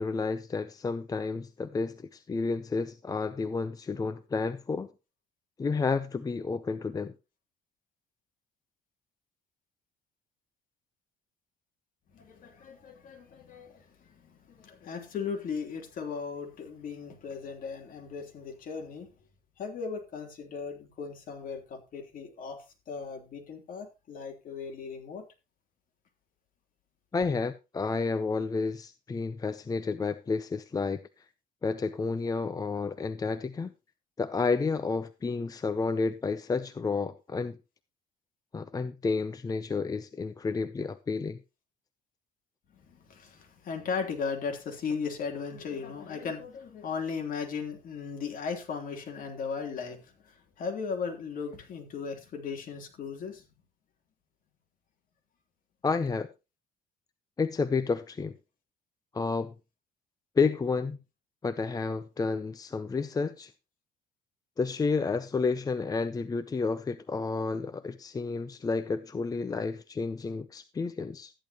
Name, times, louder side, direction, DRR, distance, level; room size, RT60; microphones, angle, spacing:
voice 1, 0.0-4.9 5.6-7.1 27.1-31.0 31.6-33.7 34.2-37.6 38.5-41.4 55.8-56.3 57.4-58.4 59.1-59.5 60.4-61.0 61.4-63.5 64.6-71.3, left 4 dB, 20° left, 0.6 m, -30 dB
voice 2, 12.1-19.1 19.6-25.2 42.7-53.5, left 5 dB, 55° left, 3.4 m, -37 dB
13.5 x 10.5 x 3.0 m
cardioid pair, 110°, 17 cm